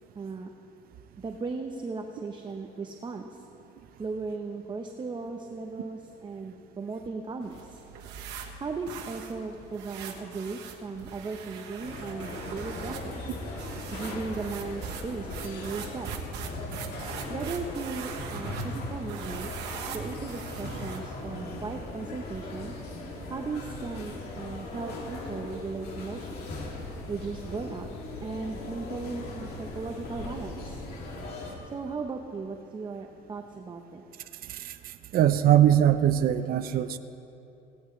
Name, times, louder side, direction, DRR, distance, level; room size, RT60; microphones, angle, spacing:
voice 1, 0.1-0.5 1.2-3.4 4.0-7.8 8.6-13.4 13.9-16.1 17.3-19.5 19.9-22.7 23.3-26.6 27.1-27.9 28.2-30.8 31.6-34.0, right 4 dB, 25° right, 3 dB, 0.9 m, -37 dB
sound 1, 7.4-21.2, right 6 dB, 85° right, 1.5 m, -42 dB
sound 2, 11.8-31.5, left 2 dB, 70° left, 2.8 m, -39 dB
voice 2, 35.1-37.0, right 11 dB, 60° right, 10 dB, 0.6 m, -21 dB
17.5 x 17.0 x 3.3 m, 2.9 s
cardioid pair, 110°, 17 cm